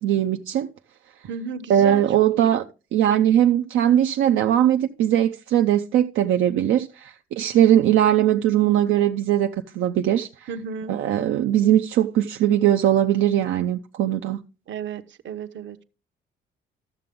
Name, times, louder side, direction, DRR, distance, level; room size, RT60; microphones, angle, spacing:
voice 1, 0.0-0.7 1.7-2.6 2.9-10.5 10.9-14.4, right 11 dB, 85° right, 0.6 m, -20 dB
voice 2, 1.2-2.0 2.4-2.6 10.5-10.9 14.7-15.8, right 6 dB, 70° right, 1.0 m, -33 dB
13.0 x 6.8 x 3.7 m
cardioid pair, 90°, 20 cm